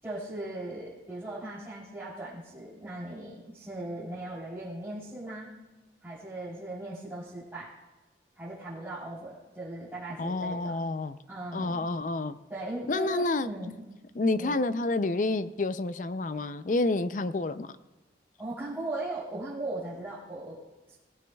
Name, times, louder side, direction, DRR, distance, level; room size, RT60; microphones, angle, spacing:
voice 1, 0.0-5.5 6.0-7.7 8.4-10.7 11.3-11.9 12.5-13.9 14.4-14.5 18.4-20.6 20.9-21.0, right 2 dB, 15° right, -11 dB, 3.5 m, -38 dB
voice 2, 10.2-11.2 11.5-12.4 12.9-13.5 14.1-17.8, left 2 dB, 45° left, 13 dB, 0.5 m, -29 dB
19.0 x 14.5 x 2.3 m, 1.1 s
head